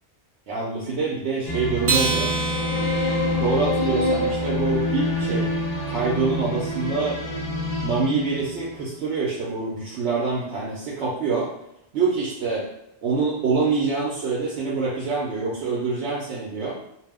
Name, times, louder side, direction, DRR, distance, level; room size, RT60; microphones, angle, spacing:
voice 1, 0.5-2.3 3.3-5.5 5.9-7.2 7.8-11.5 11.9-12.7 13.0-16.8, right 4 dB, 75° right, -5 dB, 0.9 m, -25 dB
sound 1, 1.5-8.9, left 2 dB, 40° left, 1.0 m, -26 dB
Acoustic guitar, 1.8-4.5, right 4 dB, 55° right, 0.3 m, -28 dB
2.5 x 2.0 x 3.4 m, 0.82 s
omnidirectional pair, 1.2 m